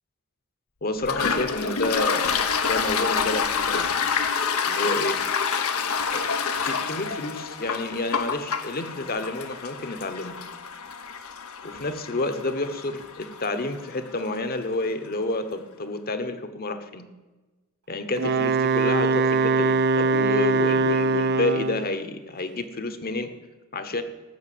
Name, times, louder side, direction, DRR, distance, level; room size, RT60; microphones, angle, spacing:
voice 1, 0.8-3.9 4.7-5.2 6.1-6.2 6.6-10.4 11.6-17.1 17.9-23.3 23.7-24.0, left 2 dB, 45° left, 9 dB, 1.1 m, -29 dB
Toilet flush, 1.0-14.4, left 6 dB, 80° left, 1.0 m, -28 dB
Wind instrument woodwind instrument, 18.2-21.9, right 3 dB, 50° right, 0.4 m, -22 dB
14.0 x 6.6 x 8.5 m, 1.2 s
head